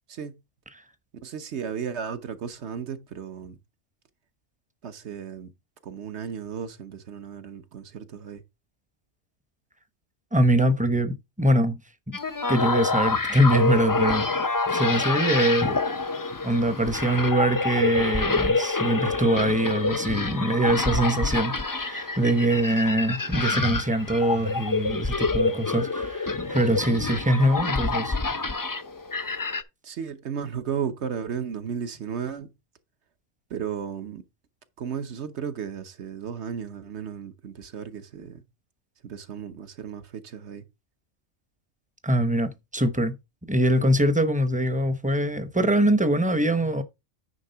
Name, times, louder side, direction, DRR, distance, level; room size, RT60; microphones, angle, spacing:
voice 1, 1.2-3.6 4.8-5.5 5.8-8.4 29.8-32.5 33.5-34.2 34.8-38.4 39.0-40.6, right 7 dB, 65° right, 1.2 m, -34 dB
voice 2, 10.3-11.8 12.1-12.2 12.5-14.3 14.7-15.8 16.1-28.2 42.0-43.2 43.5-46.8, right 1 dB, 10° right, 0.7 m, -23 dB
sound 1, 12.1-29.6, left 3 dB, 30° left, 0.4 m, -27 dB
9.6 x 3.6 x 5.6 m
omnidirectional pair, 1.3 m